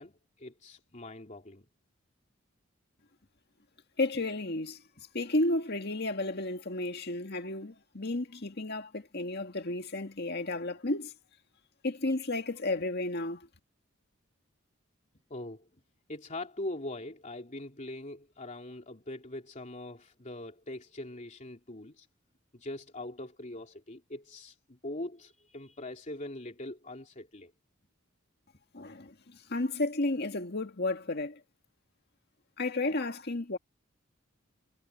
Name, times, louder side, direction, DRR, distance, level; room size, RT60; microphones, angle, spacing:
voice 1, 0.0-1.7 15.3-15.7 16.1-22.1 22.5-27.5, left 1 dB, 40° left, 3.0 m, -42 dB
voice 2, 4.0-4.8 5.1-11.1 11.8-13.5 28.7-31.4 32.6-33.6, left 2 dB, 55° left, 1.9 m, -32 dB
head